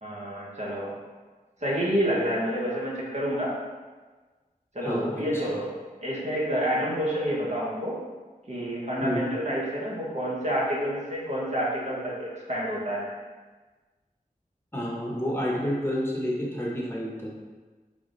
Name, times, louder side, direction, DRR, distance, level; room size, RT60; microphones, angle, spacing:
voice 1, 0.0-1.0 1.6-3.5 4.7-5.7 6.0-8.0 8.5-13.1, equal, 50° right, -5 dB, 1.1 m, -28 dB
voice 2, 4.8-5.4 9.0-9.2 14.7-17.3, equal, 15° left, -4 dB, 0.9 m, -29 dB
3.5 x 3.5 x 3.9 m, 1.3 s
wide cardioid pair, 65°, 15 cm